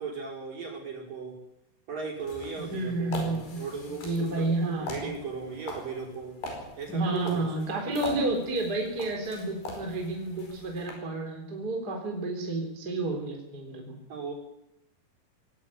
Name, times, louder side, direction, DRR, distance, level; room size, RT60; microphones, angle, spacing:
voice 1, 0.0-1.4 1.9-4.5 4.8-6.4 6.8-7.4 14.1-14.3, right 5 dB, 55° right, 0 dB, 6.9 m, -37 dB
sound 1, 2.2-10.9, left 2 dB, 75° left, 7.0 m, -42 dB
voice 2, 2.7-3.6 4.0-5.1 6.9-14.0, right 2 dB, 25° right, 1 dB, 4.0 m, -30 dB
19.0 x 17.0 x 9.9 m, 0.83 s
omnidirectional pair, 4.8 m